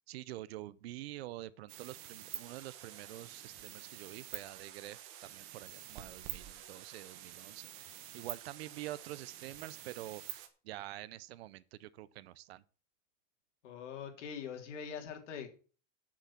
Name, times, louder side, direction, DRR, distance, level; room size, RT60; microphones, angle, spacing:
voice 1, 0.1-12.6, right 15 dB, 60° right, 0.7 m, -47 dB
sound 1, 1.7-10.5, right 12 dB, 35° right, 1.3 m, -48 dB
voice 2, 13.6-15.5, left 7 dB, 75° left, 3.4 m, -43 dB
10.0 x 6.5 x 7.3 m
supercardioid pair, 175°, 36 cm